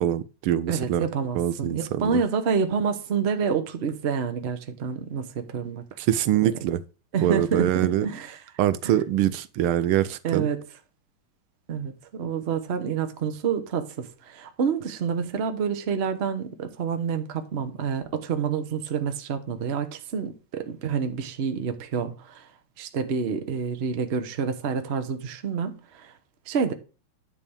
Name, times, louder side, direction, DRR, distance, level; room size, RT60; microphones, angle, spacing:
voice 1, 0.0-1.0 1.3-2.2 6.0-6.8 7.2-8.1 8.6-10.5, right 11 dB, 80° right, 1.5 m, -24 dB
voice 2, 0.7-5.8 6.4-6.5 7.1-8.4 8.8-8.9 10.2-10.6 11.7-22.5 22.8-26.1 26.5-26.7, right 6 dB, 50° right, 0.8 m, -28 dB
10.0 x 3.4 x 7.1 m
omnidirectional pair, 2.4 m